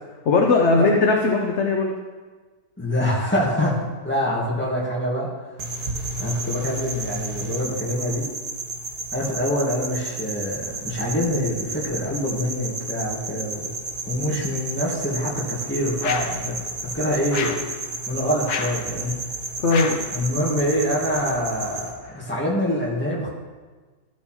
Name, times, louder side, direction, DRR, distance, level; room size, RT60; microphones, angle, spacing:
voice 1, 0.3-1.9 19.6-20.0, left 3 dB, 55° left, 1 dB, 1.0 m, -19 dB
voice 2, 2.8-5.3 6.2-8.3 9.1-13.7 14.1-17.6 18.1-19.2 20.1-23.3, equal, 5° left, -5 dB, 2.0 m, -25 dB
sound 1, 5.6-21.9, right 2 dB, 85° right, 2.0 m, -32 dB
sound 2, 16.0-16.4 17.3-17.7 18.5-18.8 19.7-20.1, left 6 dB, 90° left, 1.5 m, -29 dB
13.5 x 4.7 x 4.4 m, 1.3 s
omnidirectional pair, 1.6 m